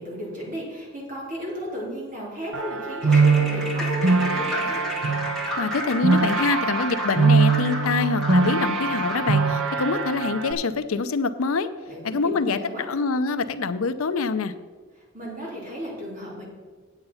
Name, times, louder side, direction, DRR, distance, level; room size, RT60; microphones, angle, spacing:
voice 1, 0.0-4.8 11.9-12.8 15.1-16.4, equal, 40° right, -4 dB, 3.6 m, -35 dB
sound 1, 2.5-10.5, right 4 dB, 80° right, 0.8 m, -22 dB
sound 2, 3.0-9.5, left 1 dB, ahead, 1.8 m, -33 dB
voice 2, 5.6-11.7 12.0-12.6 12.9-14.5, left 4 dB, 80° left, 11 dB, 0.6 m, -25 dB
9.2 x 8.0 x 5.6 m, 1.5 s
head